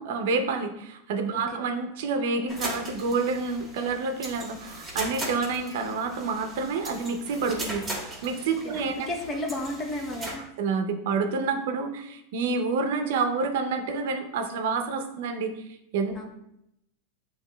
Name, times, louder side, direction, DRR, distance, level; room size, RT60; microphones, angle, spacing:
voice 1, 0.0-7.8 8.2-8.9 10.6-15.6 15.9-16.2, right 4 dB, 70° right, 6 dB, 0.6 m, -28 dB
sound 1, 2.5-10.3, right 1 dB, 10° right, 1.3 m, -38 dB
voice 2, 8.6-10.5 16.1-16.2, left 1 dB, 30° left, 2 dB, 0.6 m, -33 dB
7.9 x 2.7 x 2.2 m, 0.80 s
supercardioid pair, 130°, 0 cm